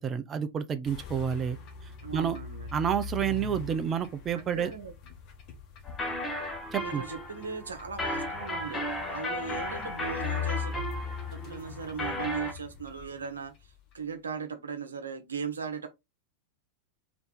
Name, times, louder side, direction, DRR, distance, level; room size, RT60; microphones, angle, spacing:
voice 1, 0.0-1.6 2.1-2.4 2.7-4.7 6.7-7.0, right 8 dB, 25° right, 0.6 m, -29 dB
sound 1, 0.9-13.7, left 7 dB, 40° left, 1.3 m, -41 dB
voice 2, 2.0-2.7 4.3-4.9 6.8-8.8 9.1-10.8 11.3-13.5 13.9-15.9, right 5 dB, 70° right, 1.0 m, -38 dB
sound 2, 5.9-12.5, left 1 dB, 20° left, 1.2 m, -35 dB
3.8 x 3.4 x 3.9 m
figure-of-eight pair, 90°, 0 cm